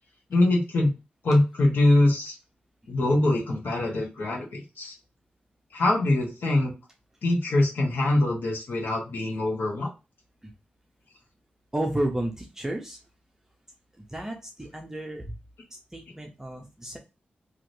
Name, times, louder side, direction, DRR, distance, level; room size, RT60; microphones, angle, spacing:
voice 1, 0.3-0.9 1.2-2.4 2.9-5.0 5.7-6.7 7.2-9.9, left 2 dB, 75° left, -1 dB, 1.3 m, -23 dB
voice 2, 11.7-13.0 14.0-15.4 15.7-17.0, right 1 dB, 15° right, 1 dB, 0.6 m, -32 dB
3.1 x 2.8 x 2.6 m, 0.28 s
wide cardioid pair, 90°, 4 cm